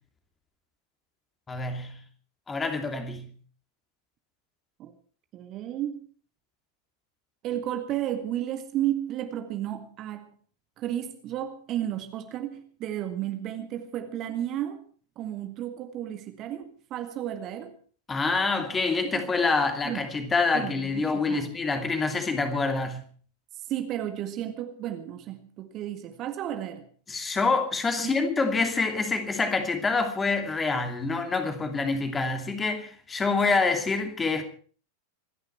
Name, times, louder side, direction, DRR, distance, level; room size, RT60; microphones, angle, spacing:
voice 1, 1.5-2.0 2.5-3.3 18.1-23.0 27.1-34.4, left 4 dB, 15° left, 2.7 m, -26 dB
voice 2, 5.3-6.0 7.4-10.3 10.8-14.9 15.2-17.7 19.1-19.3 19.8-20.1 20.5-21.5 23.7-26.9 28.0-28.1, right 11 dB, 35° right, 1.8 m, -33 dB
26.0 x 10.5 x 4.5 m
figure-of-eight pair, 90°, 0 cm